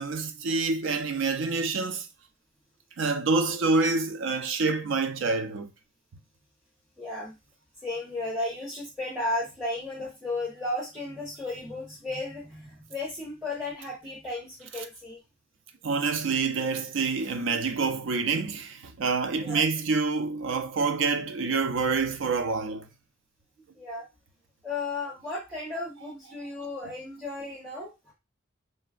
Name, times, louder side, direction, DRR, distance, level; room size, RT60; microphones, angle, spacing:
voice 1, 0.0-2.1 3.0-5.7 15.8-22.9, right 4 dB, 75° right, 0.4 m, -27 dB
voice 2, 7.0-7.3 7.8-15.2 19.4-19.6 23.8-24.0 24.6-28.1, left 2 dB, ahead, 1.0 m, -34 dB
3.2 x 2.3 x 2.4 m
head